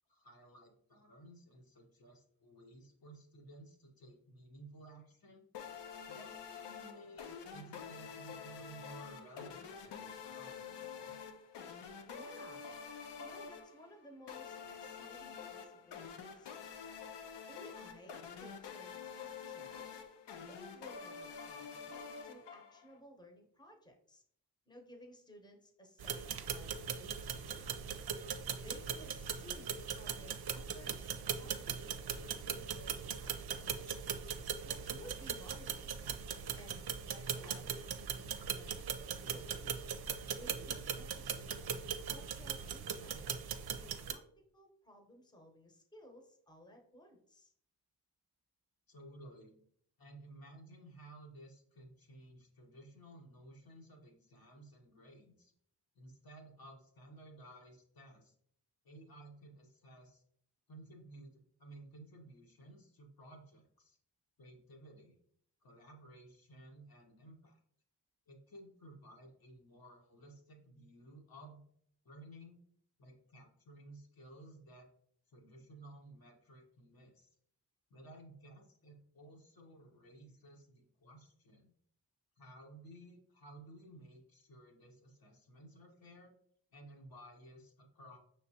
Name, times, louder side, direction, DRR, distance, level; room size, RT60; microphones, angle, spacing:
voice 1, 0.1-5.4 6.1-11.1 48.9-49.5 50.0-55.5 55.9-58.3 58.8-60.2 60.7-64.0 64.4-65.2 65.6-67.6 68.3-71.6 72.0-72.6 73.0-74.9 75.3-77.3 77.9-81.7 82.4-86.3 86.7-88.2, right 1 dB, 55° left, 1 dB, 1.1 m, -56 dB
sound 1, 5.5-23.0, left 6 dB, 85° left, 0.6 m, -48 dB
voice 2, 12.0-12.7 13.2-16.6 17.5-19.8 20.5-24.2 24.7-27.7 28.5-34.0 34.6-36.3 36.5-38.8 39.2-39.8 40.4-41.5 42.1-43.3 43.8-44.2 44.5-47.5, equal, 10° left, 2 dB, 0.9 m, -57 dB
sound 2, 26.0-44.1, right 7 dB, 60° right, 0.6 m, -40 dB
5.3 x 3.3 x 2.8 m, 0.65 s
cardioid pair, 55°, 41 cm